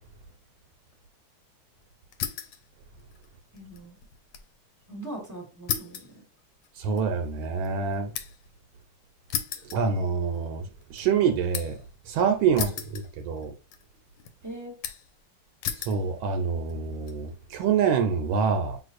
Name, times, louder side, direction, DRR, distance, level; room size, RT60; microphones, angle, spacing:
sound 1, 2.1-2.6 3.0-4.5 4.8-4.9 5.7-8.5 9.3-10.4 10.8-11.9 12.6-13.5 13.7-14.3 14.8-15.2 15.6-16.0 16.7-17.1, left 8 dB, 80° left, 1.3 m, -35 dB
voice 1, 3.5-4.0 4.9-6.2 12.6-12.8 14.4-14.8, right 1 dB, 15° right, 0.6 m, -41 dB
voice 2, 6.8-8.1 9.7-11.8 12.1-13.5 15.8-18.8, right 6 dB, 80° right, 1.3 m, -26 dB
5.5 x 3.1 x 2.4 m
omnidirectional pair, 2.3 m